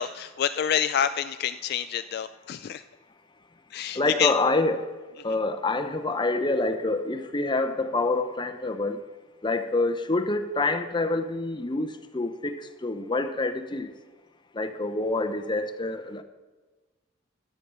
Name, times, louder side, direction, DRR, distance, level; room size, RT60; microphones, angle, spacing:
voice 1, 0.0-2.8 3.7-4.3, left 9 dB, 50° left, 12 dB, 0.3 m, -27 dB
voice 2, 3.9-4.9 5.2-9.0 9.4-13.9 14.5-16.2, left 2 dB, 25° left, 9 dB, 0.7 m, -27 dB
11.0 x 9.4 x 6.8 m, 1.3 s
head